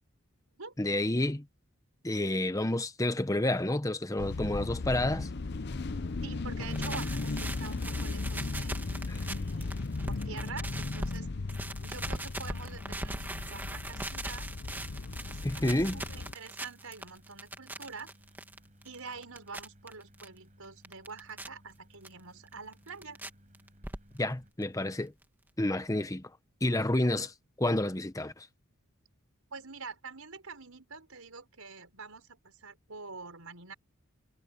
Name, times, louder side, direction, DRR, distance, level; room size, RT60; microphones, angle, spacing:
voice 1, 0.8-1.4 2.0-5.3 9.1-9.2 15.4-16.0 24.2-25.1 25.6-26.3 26.6-27.3 27.6-28.5, left 1 dB, 15° left, 0.9 m, -29 dB
sound 1, 4.2-16.3, left 3 dB, 50° left, 0.7 m, -36 dB
sound 2, 5.6-24.5, equal, 35° right, 7.3 m, -60 dB
voice 2, 6.2-9.8 10.1-11.3 11.8-14.5 15.3-18.1 18.8-23.2 27.0-27.3 29.5-33.7, right 4 dB, 85° right, 5.1 m, -46 dB
sound 3, 6.5-11.2 11.5-20.3 20.6-21.5 22.0-22.1 22.5-23.3 23.5-24.3 24.6-24.7 24.9-25.0 25.2-25.3, right 1 dB, 10° right, 1.9 m, -41 dB
head